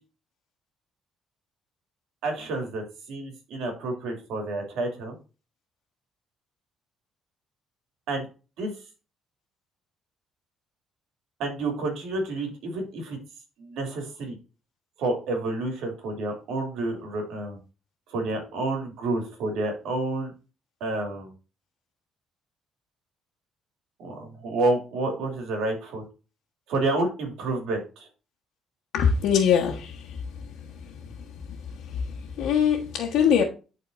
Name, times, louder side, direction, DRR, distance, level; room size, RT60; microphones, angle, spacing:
voice 1, 2.2-5.2 8.1-8.3 8.6-8.7 11.4-13.2 13.6-14.4 15.0-17.6 18.1-20.3 20.8-21.3 24.0-26.0 26.7-28.1, right 2 dB, 80° right, 2.6 m, -29 dB
voice 2, 28.9-30.2 30.8-31.1 31.7-33.4, left 7 dB, 75° left, 1.2 m, -23 dB
11.5 x 4.3 x 2.6 m
cardioid pair, 145°, 0 cm